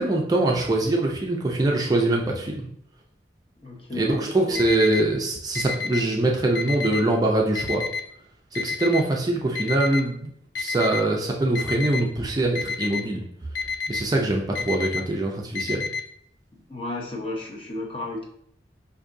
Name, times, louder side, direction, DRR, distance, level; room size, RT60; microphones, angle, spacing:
voice 1, 0.0-2.7 3.9-7.8 8.5-10.3 10.6-13.2 13.9-15.9, right 2 dB, 20° right, -1 dB, 0.4 m, -23 dB
voice 2, 3.6-4.6 16.7-18.2, left 2 dB, 30° left, -1 dB, 0.7 m, -33 dB
Alarm, 4.5-5.0 5.5-6.0 6.5-7.0 7.5-8.0 8.5-9.0 9.5-10.0 10.5-11.0 11.5-12.0 12.5-13.0 13.5-14.0 14.5-15.0 15.5-16.0, left 5 dB, 85° left, 0.5 m, -28 dB
4.8 x 2.6 x 2.5 m, 0.68 s
head